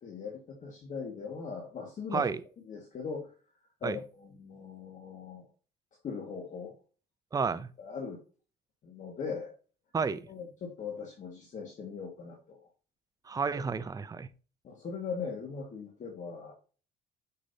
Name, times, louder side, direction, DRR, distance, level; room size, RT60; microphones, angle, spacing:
voice 1, 0.0-2.3 2.6-3.3 3.8-5.5 6.0-6.7 7.8-8.2 8.8-9.5 10.3-12.6 14.6-16.5, left 5 dB, 45° left, 1.8 m, -40 dB
voice 2, 7.3-7.7 9.9-10.2 13.3-14.3, right 5 dB, 20° right, 0.5 m, -31 dB
6.7 x 6.7 x 2.8 m
cardioid pair, 110°, 17 cm